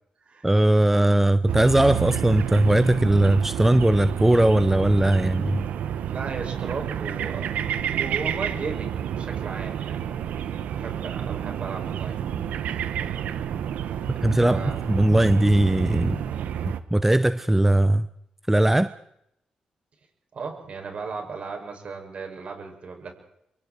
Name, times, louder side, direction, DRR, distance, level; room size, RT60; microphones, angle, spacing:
voice 1, 0.4-5.7 14.2-14.6 14.9-16.2 16.9-18.1 18.5-18.9, right 1 dB, 10° right, 13 dB, 0.9 m, -19 dB
sound 1, 1.5-16.8, right 9 dB, 85° right, 1.3 m, -30 dB
voice 2, 6.1-7.5 7.9-10.0 10.8-12.2 14.5-14.9 20.3-23.1, right 4 dB, 55° right, 3 dB, 7.4 m, -35 dB
27.0 x 24.0 x 4.7 m, 0.76 s
cardioid pair, 70°, 3 cm